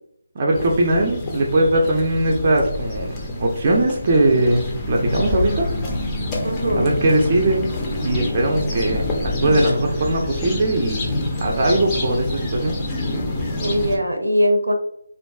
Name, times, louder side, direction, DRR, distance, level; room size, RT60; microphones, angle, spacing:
voice 1, 0.4-5.7 6.8-7.6 8.0-12.8, right 1 dB, 35° right, 0 dB, 0.5 m, -20 dB
sound 1, 0.5-14.0, left 2 dB, 20° left, 0.5 m, -27 dB
voice 2, 6.4-6.9 13.6-14.7, equal, 85° right, 4 dB, 0.6 m, -20 dB
2.5 x 2.3 x 2.3 m, 0.71 s
figure-of-eight pair, 160°, 0 cm